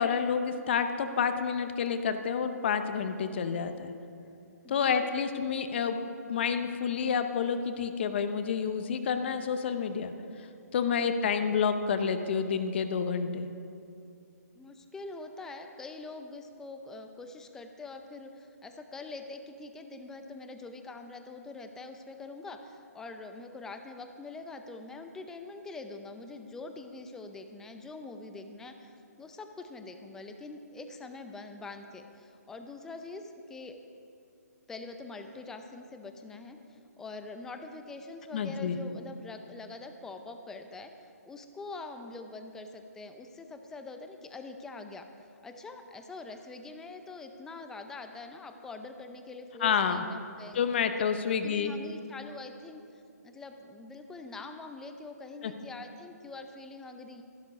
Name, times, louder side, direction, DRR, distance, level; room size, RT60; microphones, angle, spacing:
voice 1, 0.0-3.9 4.7-6.0 6.3-10.1 10.7-13.5 38.3-38.8 49.6-50.0 50.5-51.7 55.4-55.5, left 6 dB, 40° left, 9 dB, 0.8 m, -29 dB
voice 2, 4.6-5.2 14.5-33.8 34.7-40.9 41.2-50.6 51.4-57.2, left 3 dB, 5° left, 6 dB, 0.5 m, -44 dB
14.0 x 11.5 x 5.2 m, 2.5 s
hypercardioid pair, 155°, 9 cm